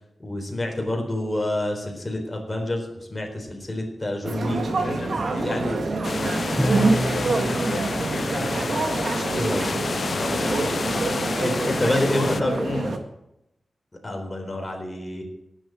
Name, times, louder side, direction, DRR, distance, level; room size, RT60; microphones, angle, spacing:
voice 1, 0.2-4.6 5.4-5.8 9.3-9.7 11.4-12.5 14.0-15.2, left 1 dB, 20° left, 1 dB, 4.1 m, -28 dB
sound 1, 4.2-13.0, right 3 dB, 65° right, 1.9 m, -26 dB
voice 2, 4.7-5.7 6.2-8.5 10.1-11.0 11.6-13.0, left 3 dB, 70° left, 2 dB, 1.9 m, -34 dB
sound 2, 6.0-12.4, left 4 dB, 50° left, 0.4 m, -29 dB
Bowed string instrument, 6.6-9.4, equal, 5° right, 0.9 m, -30 dB
17.5 x 7.9 x 7.9 m, 0.84 s
wide cardioid pair, 130°, 0 cm